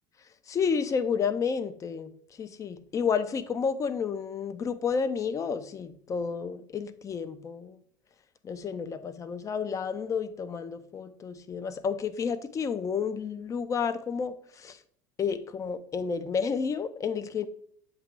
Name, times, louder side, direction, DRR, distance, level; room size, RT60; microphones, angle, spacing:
voice 1, 0.5-2.1 2.4-7.8 8.4-14.8 15.2-17.5, left 6 dB, 30° left, 0.5 m, -31 dB
7.4 x 2.9 x 4.5 m
hypercardioid pair, 80°, 11 cm